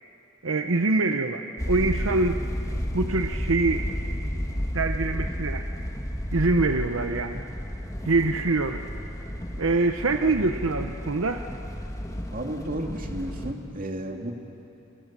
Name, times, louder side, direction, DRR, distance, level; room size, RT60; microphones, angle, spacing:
voice 1, 0.4-2.4 2.9-4.0 4.5-5.6 6.3-7.4 8.1-8.8 9.6-11.5, right 3 dB, 75° right, 6 dB, 0.9 m, -24 dB
sound 1, 1.6-13.5, equal, 15° left, 1.6 m, -32 dB
voice 2, 12.3-14.3, right 1 dB, 45° right, 2 dB, 2.4 m, -32 dB
29.5 x 25.5 x 7.5 m, 2.9 s
head